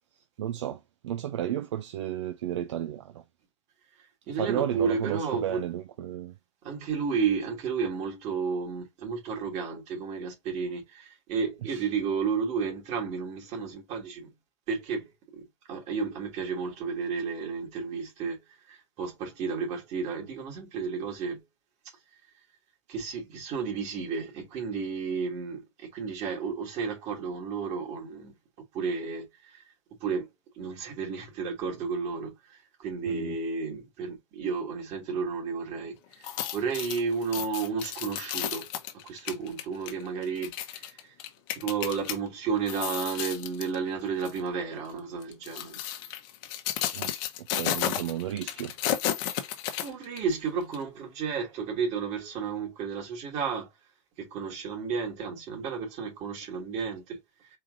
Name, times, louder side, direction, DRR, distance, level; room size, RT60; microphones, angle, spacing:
voice 1, 0.4-3.2 4.4-6.4 11.6-11.9 33.1-33.4 46.9-48.7, right 11 dB, 70° right, 0.6 m, -33 dB
voice 2, 4.3-5.6 6.6-14.3 14.7-15.4 15.7-21.4 22.9-28.3 28.7-29.6 30.0-30.3 30.6-36.3 36.5-38.7 38.9-41.1 41.5-45.8 49.8-53.7 54.2-57.5, right 5 dB, 45° right, 2.3 m, -32 dB
sound 1, 36.1-42.2 42.6-43.8 44.2-44.4 45.2-50.3 50.7-50.8, left 11 dB, 55° left, 0.9 m, -33 dB
4.4 x 3.6 x 2.5 m
hypercardioid pair, 90°, 15 cm